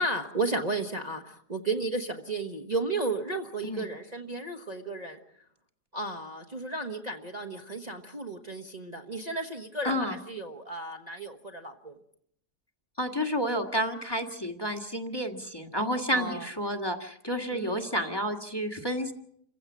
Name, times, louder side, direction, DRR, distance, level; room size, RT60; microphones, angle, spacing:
voice 1, 0.0-5.2 5.9-12.0 16.1-16.5 17.5-17.8, right 2 dB, 25° right, 3 dB, 1.3 m, -33 dB
voice 2, 13.0-19.1, equal, 15° left, 5 dB, 1.7 m, -30 dB
28.5 x 16.0 x 7.3 m, 0.72 s
omnidirectional pair, 1.7 m